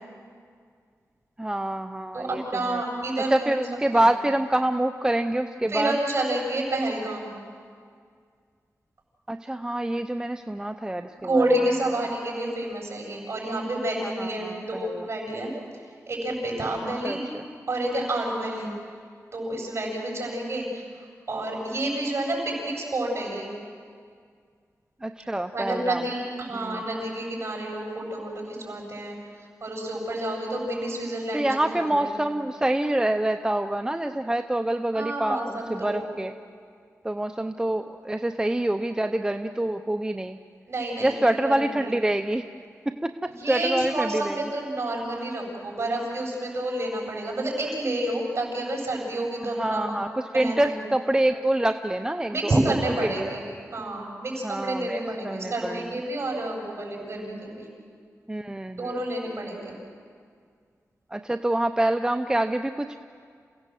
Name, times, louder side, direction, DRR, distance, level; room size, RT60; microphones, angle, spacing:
voice 1, 1.4-2.8 3.3-6.0 9.3-11.4 14.0-15.1 16.8-17.4 18.6-18.8 25.0-26.0 26.5-26.8 31.3-36.3 37.0-40.4 41.0-42.4 42.9-44.4 49.4-52.6 53.0-53.3 54.4-55.9 58.3-59.0 61.1-63.0, right 1 dB, 15° right, 7 dB, 0.7 m, -26 dB
voice 2, 2.1-3.6 3.9-4.1 5.7-7.4 11.2-15.5 16.1-17.2 17.7-18.7 19.3-20.8 21.3-23.5 25.5-29.2 29.6-32.2 34.9-36.1 40.7-41.1 41.4-41.9 43.3-49.9 50.3-50.7 52.2-57.7 58.7-59.7, right 1 dB, 50° right, -1 dB, 7.3 m, -29 dB
29.0 x 17.0 x 7.7 m, 2.1 s
wide cardioid pair, 95°, 6 cm